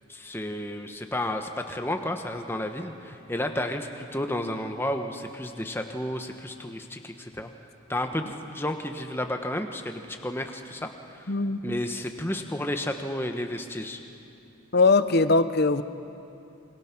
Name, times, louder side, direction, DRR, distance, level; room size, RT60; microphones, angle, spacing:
voice 1, 0.1-7.5 7.9-11.3 11.6-14.0, left 1 dB, 10° left, 5 dB, 1.2 m, -32 dB
voice 2, 11.3-11.6 14.7-15.8, left 3 dB, 45° left, 12 dB, 0.8 m, -20 dB
27.0 x 24.0 x 6.1 m, 2.8 s
head